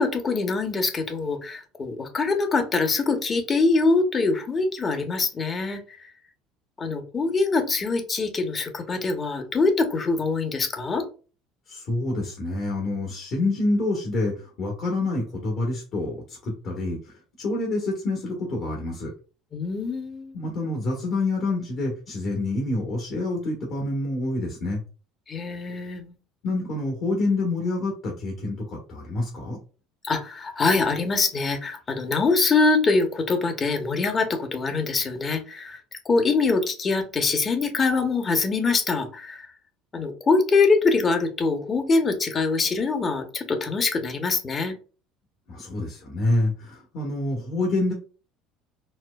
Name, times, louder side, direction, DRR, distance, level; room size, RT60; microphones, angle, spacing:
voice 1, 0.0-6.1 6.8-11.0 19.5-20.4 25.3-26.1 30.0-39.5 39.9-44.8, left 4 dB, 30° left, 7 dB, 0.8 m, -24 dB
voice 2, 11.7-19.1 20.3-24.8 26.4-29.6 45.5-47.9, left 2 dB, 55° left, -2 dB, 1.1 m, -27 dB
4.3 x 2.2 x 2.2 m, 0.36 s
supercardioid pair, 85°, 0 cm